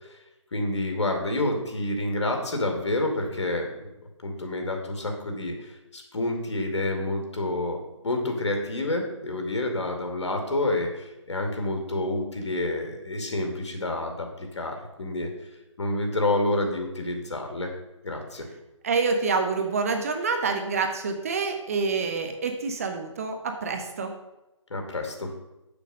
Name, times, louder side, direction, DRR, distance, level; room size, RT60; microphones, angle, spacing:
voice 1, 0.5-3.8 4.2-7.8 8.0-15.3 15.8-17.7 18.0-18.5 24.7-25.3, left 2 dB, 65° left, 3 dB, 2.4 m, -28 dB
voice 2, 18.8-24.1, right 4 dB, 30° right, 5 dB, 0.8 m, -27 dB
6.9 x 6.4 x 6.3 m, 0.96 s
hypercardioid pair, 165°, 16 cm